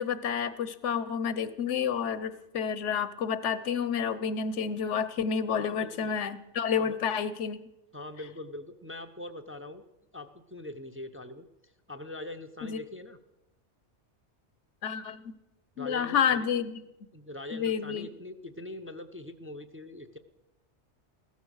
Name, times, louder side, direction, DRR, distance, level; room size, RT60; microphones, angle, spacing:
voice 1, 0.0-7.6 12.6-12.8 14.8-15.3 15.8-16.8 17.5-18.1, left 7 dB, 85° left, 14 dB, 1.2 m, -30 dB
voice 2, 5.6-6.1 6.7-7.0 7.9-9.8 10.1-11.5 11.9-13.2 15.8-16.5 17.1-20.2, left 2 dB, 15° right, 6 dB, 0.6 m, -42 dB
16.0 x 13.5 x 6.3 m, 0.94 s
omnidirectional pair, 1.2 m